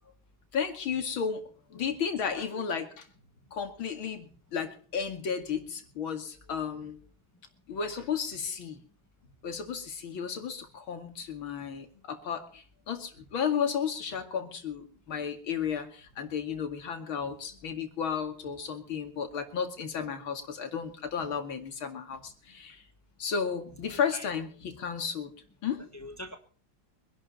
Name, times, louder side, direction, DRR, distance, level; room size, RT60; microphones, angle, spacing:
voice 1, 0.5-1.4 1.7-2.9 3.5-7.0 7.7-8.7 9.4-12.4 12.9-15.9 16.2-22.2 22.5-22.7 23.2-25.3 25.6-25.8, left 7 dB, 85° left, 6 dB, 3.0 m, -33 dB
voice 2, 2.2-2.6 20.0-20.1 23.9-24.3 25.9-26.4, equal, 20° left, 7 dB, 0.5 m, -43 dB
24.5 x 11.0 x 4.3 m, 0.43 s
omnidirectional pair, 2.2 m